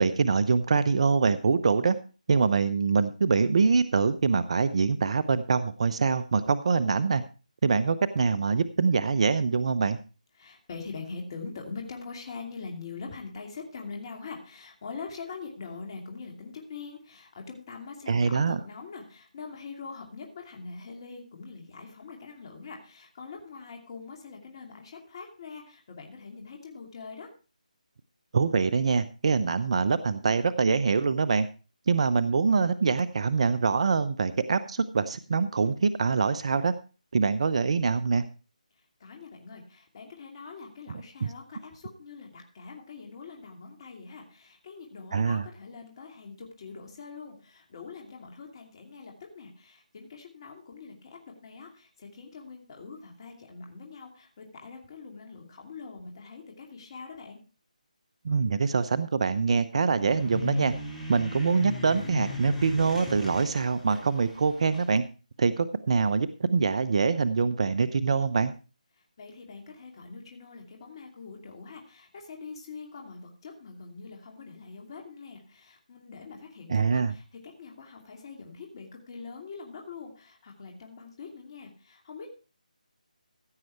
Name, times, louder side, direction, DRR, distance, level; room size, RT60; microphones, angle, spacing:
voice 1, 0.0-2.0 2.3-7.2 7.6-10.0 18.1-18.6 28.3-31.5 31.9-36.7 37.1-38.2 41.2-41.3 45.1-45.4 58.2-60.7 61.1-65.0 65.4-68.5 76.7-77.1, right 5 dB, 50° right, 13 dB, 0.7 m, -24 dB
voice 2, 10.4-27.3 38.8-57.4 69.0-82.3, left 4 dB, 35° left, 1 dB, 2.6 m, -43 dB
sound 1, 59.9-64.9, left 3 dB, ahead, 4.2 m, -38 dB
15.5 x 7.7 x 4.6 m, 0.34 s
figure-of-eight pair, 160°, 4 cm